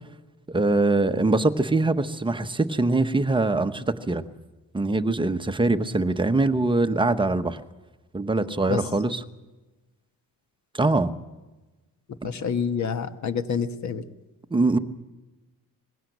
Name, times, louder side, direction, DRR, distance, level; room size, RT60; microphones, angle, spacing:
voice 1, 0.5-4.2 4.7-7.6 8.1-9.2 10.7-11.1 14.5-14.8, right 2 dB, 15° right, 0.9 m, -23 dB
voice 2, 12.2-14.0, left 6 dB, 50° left, 1.4 m, -27 dB
20.5 x 17.0 x 8.0 m
cardioid pair, 135°, 35 cm